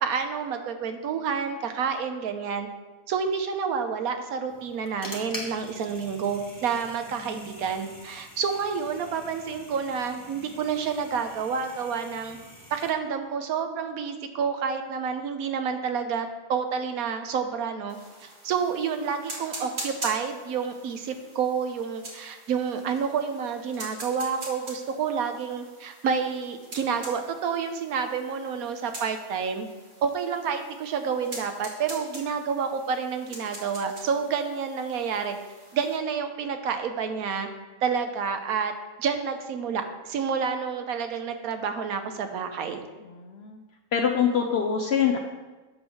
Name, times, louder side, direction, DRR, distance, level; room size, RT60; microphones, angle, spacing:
voice 1, 0.0-2.7 3.1-12.4 12.7-29.7 30.0-35.4 35.7-37.5 37.8-38.7 39.0-42.8, right 6 dB, 80° right, 7 dB, 1.2 m, -29 dB
sound 1, 4.5-12.9, left 1 dB, 15° left, 1.2 m, -44 dB
sound 2, 17.9-36.0, right 1 dB, 55° right, 1.9 m, -43 dB
voice 2, 43.0-43.6 43.9-45.2, left 7 dB, 60° left, 4 dB, 0.7 m, -24 dB
8.5 x 3.5 x 6.2 m, 1.2 s
omnidirectional pair, 1.5 m